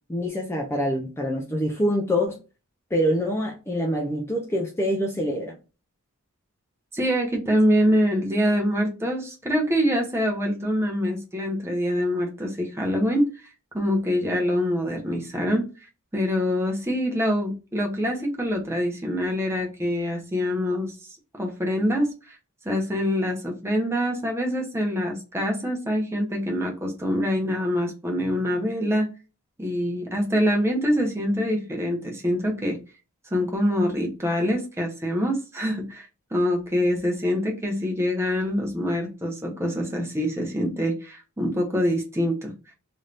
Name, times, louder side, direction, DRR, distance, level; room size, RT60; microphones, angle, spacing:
voice 1, 0.1-2.4 2.9-5.6, equal, 10° left, 1 dB, 0.5 m, -25 dB
voice 2, 6.9-13.3 13.7-15.6 16.1-20.9 21.4-22.3 22.6-29.1 29.6-32.8 33.3-42.5, equal, 10° right, 1 dB, 0.9 m, -25 dB
3.3 x 2.7 x 2.5 m, 0.31 s
head